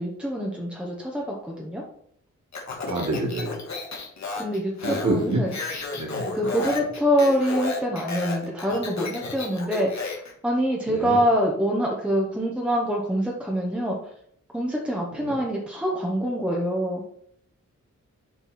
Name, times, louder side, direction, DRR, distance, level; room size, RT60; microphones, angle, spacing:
voice 1, 0.0-1.8 4.4-5.5 6.3-14.0 14.5-17.0, equal, 5° right, -2 dB, 1.2 m, -25 dB
Speech, 2.5-10.3, left 4 dB, 65° left, 1.6 m, -33 dB
voice 2, 2.8-3.6 4.8-5.4 6.0-6.7 10.9-11.2 15.1-15.4, right 2 dB, 75° right, -1 dB, 2.0 m, -28 dB
7.1 x 4.6 x 4.3 m, 0.67 s
wide cardioid pair, 125°, 30 cm